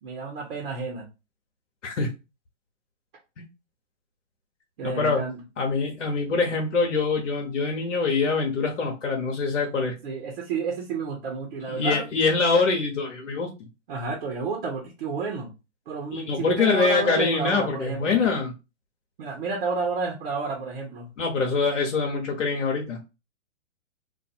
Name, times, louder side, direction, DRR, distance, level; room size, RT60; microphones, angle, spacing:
voice 1, 0.0-1.1 4.8-5.4 10.0-12.1 13.9-15.5 15.9-18.2 19.2-21.1, right 4 dB, 45° right, 1 dB, 1.1 m, -30 dB
voice 2, 4.8-5.2 5.6-9.9 11.7-13.7 16.1-18.5 21.2-23.0, left 4 dB, 75° left, 0 dB, 1.1 m, -24 dB
2.6 x 2.6 x 4.2 m, 0.27 s
hypercardioid pair, 130°, 37 cm